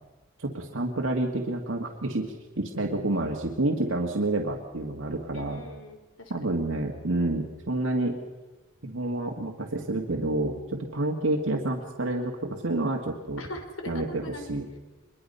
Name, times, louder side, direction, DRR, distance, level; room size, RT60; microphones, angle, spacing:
voice 1, 0.4-5.6 6.3-8.2 8.8-13.4 13.9-14.2 14.5-14.7, right 2 dB, 80° right, 0 dB, 1.8 m, -29 dB
voice 2, 5.3-6.3 13.4-14.5, left 1 dB, 80° left, 6 dB, 3.4 m, -40 dB
24.0 x 21.5 x 5.6 m, 1.2 s
head